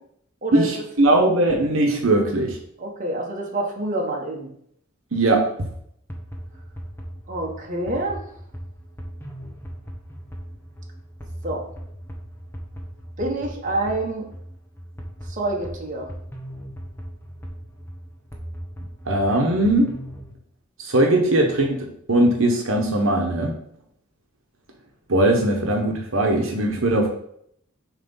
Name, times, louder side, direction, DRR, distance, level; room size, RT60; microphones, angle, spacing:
voice 1, 0.5-2.6 5.1-5.5 19.1-19.9 20.8-23.5 25.1-27.1, right 1 dB, 85° right, 1 dB, 1.1 m, -20 dB
voice 2, 2.8-4.5 7.3-8.2 11.4-11.7 13.2-14.3 15.3-16.1, right 2 dB, 40° right, -1 dB, 1.5 m, -27 dB
sound 1, 6.1-20.3, equal, 10° left, 1.1 m, -38 dB
7.2 x 3.4 x 5.6 m, 0.69 s
head